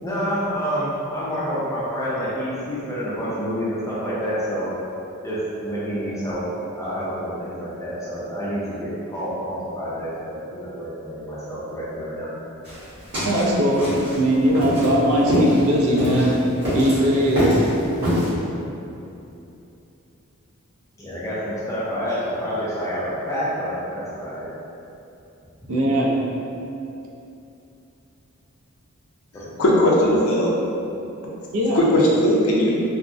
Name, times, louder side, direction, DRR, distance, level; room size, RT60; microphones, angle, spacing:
voice 1, 0.0-4.7 5.2-6.5 6.8-12.3 21.0-24.5 25.6-25.7 29.4-29.8 30.1-30.2, equal, 15° left, -9 dB, 0.4 m, -28 dB
sound 1, 12.6-18.3, equal, 50° right, 1.3 m, -24 dB
voice 2, 13.2-16.5 16.7-17.6 25.7-26.2 31.5-31.8, equal, 80° right, -2 dB, 0.5 m, -20 dB
voice 3, 29.6-30.5 31.7-32.7, equal, 70° left, -4 dB, 0.5 m, -18 dB
3.5 x 2.0 x 2.5 m, 2.8 s
head